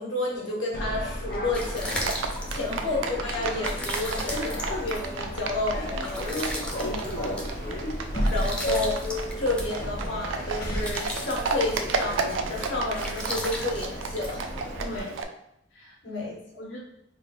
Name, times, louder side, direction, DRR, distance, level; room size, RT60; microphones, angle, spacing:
voice 1, 0.0-6.3 6.8-7.2 8.3-9.1 9.4-14.5 16.0-16.4, left 2 dB, 85° left, -4 dB, 1.2 m, -31 dB
sound 1, 0.7-15.0, equal, 50° left, 0.8 m, -33 dB
sound 2, 1.2-15.0, equal, 5° left, 0.3 m, -38 dB
Livestock farm animals working animals, 1.9-15.2, right 4 dB, 90° right, 0.4 m, -34 dB
voice 2, 6.8-7.4 14.8-15.1 15.7-16.2 16.6-16.8, left 2 dB, 65° left, -4 dB, 0.5 m, -40 dB
3.3 x 2.3 x 4.0 m, 0.78 s
head